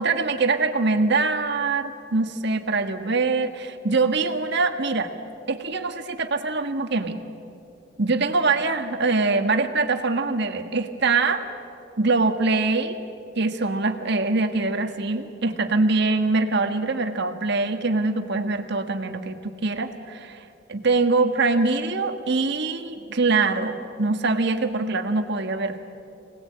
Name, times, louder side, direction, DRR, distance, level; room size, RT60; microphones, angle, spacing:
voice 1, 0.0-5.1 5.5-7.2 8.0-11.4 12.0-13.0 13.4-20.4 20.7-25.8, right 3 dB, 60° right, 6 dB, 1.6 m, -23 dB
26.5 x 19.5 x 8.6 m, 2.7 s
head